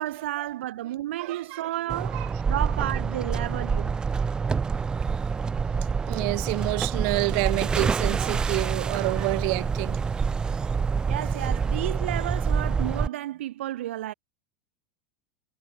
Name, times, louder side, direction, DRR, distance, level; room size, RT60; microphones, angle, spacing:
voice 1, 0.0-4.0 11.1-14.1, right 14 dB, 90° right, 2.7 m, -32 dB
voice 2, 1.2-1.7 2.1-2.3 4.4-4.6 6.0-10.0, right 40 dB or more, 55° right, 3.0 m, -28 dB
sound 1, 1.9-13.1, right 5 dB, 15° right, 0.4 m, -27 dB
supercardioid pair, 150°, 6 cm